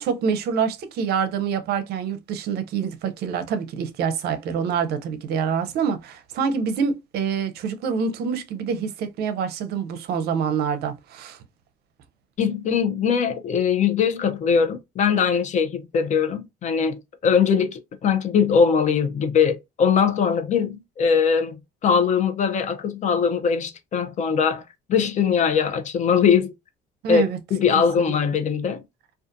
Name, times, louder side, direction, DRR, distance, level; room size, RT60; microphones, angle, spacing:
voice 1, 0.0-11.4 27.0-27.4 27.7-27.8, right 6 dB, 70° right, 0.5 m, -26 dB
voice 2, 12.4-21.6 21.8-24.6 24.9-26.5 27.1-27.2 27.5-28.8, left 6 dB, 45° left, 0.5 m, -21 dB
2.4 x 2.3 x 2.5 m
cardioid pair, 110°, 17 cm